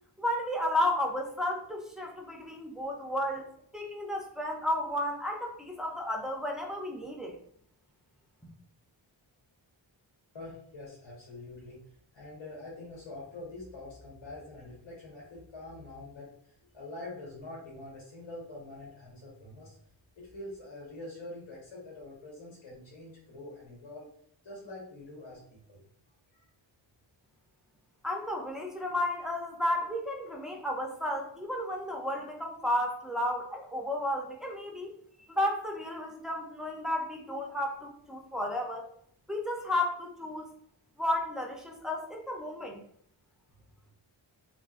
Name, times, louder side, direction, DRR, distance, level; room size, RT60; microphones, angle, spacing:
voice 1, 0.2-3.5 3.7-7.4 28.0-38.9 39.3-40.5 41.0-42.8, left 1 dB, ahead, 0 dB, 0.5 m, -33 dB
voice 2, 10.3-11.8 12.1-19.8 20.2-24.0 24.4-25.8 26.3-26.5, left 2 dB, 80° left, -4 dB, 1.3 m, -45 dB
3.7 x 2.7 x 2.4 m, 0.66 s
wide cardioid pair, 140°, 47 cm